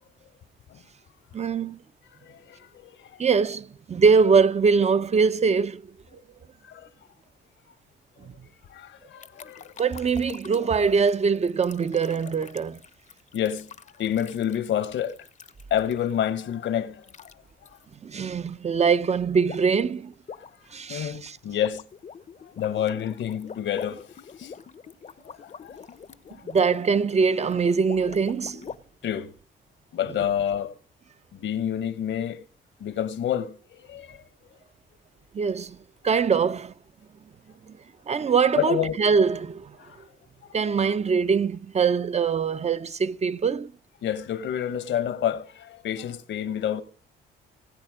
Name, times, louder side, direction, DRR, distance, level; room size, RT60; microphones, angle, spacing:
voice 1, 1.3-1.8 3.2-5.8 8.2-8.3 9.8-12.8 18.0-20.1 20.7-21.4 26.4-28.6 35.3-35.8 36.0-36.7 37.7-37.8 38.1-39.7 40.5-43.7, right 5 dB, 35° right, 0.7 m, -23 dB
voice 2, 2.2-3.2 6.6-6.9 8.7-9.7 13.3-13.7 14.0-15.3 15.7-17.1 20.4-20.5 20.9-21.8 22.4-24.5 25.4-25.8 26.3-26.5 29.0-29.3 29.9-30.7 31.3-32.4 32.8-34.2 38.6-39.0 39.8-40.0 40.4-40.5 44.0-46.8, left 10 dB, 70° left, 1.3 m, -29 dB
sound 1, 9.2-16.2 17.0-17.3 17.7-17.8 19.5-19.8 20.1-28.8, left 6 dB, 35° left, 0.8 m, -44 dB
19.5 x 8.9 x 5.0 m
cardioid pair, 90°, 20 cm